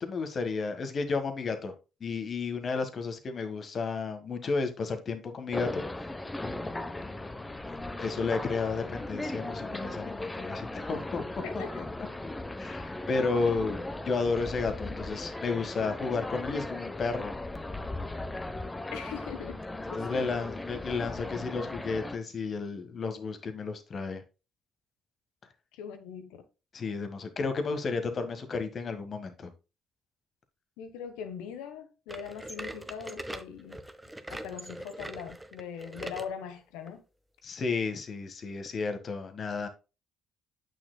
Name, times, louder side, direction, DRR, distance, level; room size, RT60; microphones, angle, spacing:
voice 1, 0.0-1.7 2.0-5.8 7.6-11.3 11.5-11.8 12.6-17.3 19.9-24.2 26.7-29.5 37.4-39.7, left 4 dB, 45° left, 1.5 m, -32 dB
sound 1, 5.5-22.2, left 2 dB, 15° left, 0.9 m, -37 dB
voice 2, 11.4-11.8 18.9-19.6 19.9-20.3 25.7-26.4 30.8-33.8 34.3-37.0, left 7 dB, 75° left, 1.2 m, -41 dB
sound 2, 32.1-36.3 36.9-37.0 37.7-37.8 38.7-38.8, right 1 dB, 10° right, 1.1 m, -42 dB
8.4 x 6.7 x 2.2 m
hypercardioid pair, 50°, 0 cm